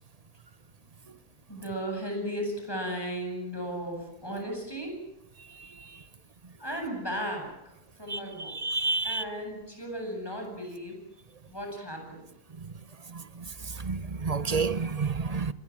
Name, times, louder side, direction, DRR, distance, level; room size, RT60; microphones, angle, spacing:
voice 1, 1.5-5.0 6.6-8.6 9.0-11.0 11.5-12.2, equal, 15° left, 8.1 m, -35 dB
voice 2, 8.6-9.2 13.8-15.5, right 4 dB, 30° right, 0.9 m, -29 dB
27.5 x 22.0 x 7.5 m
omnidirectional pair, 1.6 m